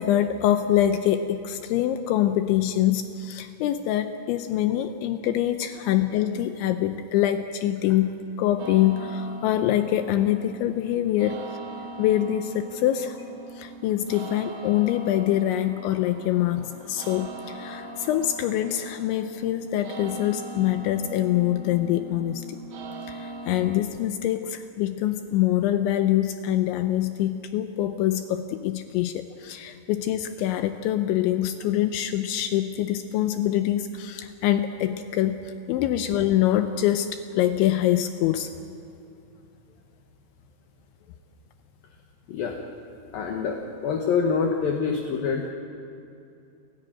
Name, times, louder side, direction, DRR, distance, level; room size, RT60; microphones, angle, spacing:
voice 1, 0.0-11.4 12.0-13.2 13.5-22.6 23.1-35.4 35.7-38.5, left 12 dB, 80° left, 8 dB, 2.9 m, -25 dB
sound 1, 8.6-23.8, right 2 dB, 75° right, 1.7 m, -41 dB
voice 2, 43.1-45.5, left 5 dB, 65° left, 2 dB, 2.5 m, -26 dB
29.5 x 14.5 x 9.0 m, 2.6 s
omnidirectional pair, 5.6 m